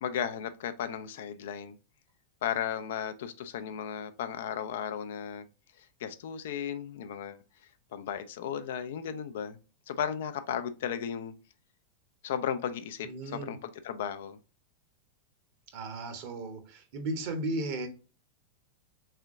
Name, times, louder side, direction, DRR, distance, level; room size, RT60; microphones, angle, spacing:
voice 1, 0.0-1.8 2.4-5.4 5.8-7.4 7.9-9.6 9.9-11.3 12.2-14.4, left 8 dB, 55° left, 0.4 m, -35 dB
voice 2, 13.0-13.5 15.7-17.9, right 2 dB, 45° right, 0.9 m, -35 dB
3.6 x 3.3 x 3.7 m
figure-of-eight pair, 90°, 0 cm